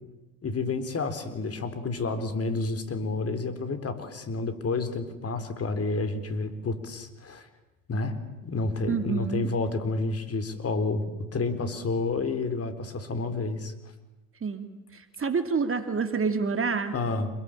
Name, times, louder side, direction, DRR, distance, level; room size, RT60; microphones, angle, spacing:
voice 1, 0.4-7.5 7.9-8.2 8.4-13.7 16.9-17.3, left 3 dB, 35° left, 9 dB, 4.1 m, -30 dB
voice 2, 8.9-9.5 14.4-16.9, right 5 dB, 30° right, 8 dB, 2.7 m, -28 dB
27.5 x 21.5 x 9.0 m, 1.0 s
hypercardioid pair, 65°, 43 cm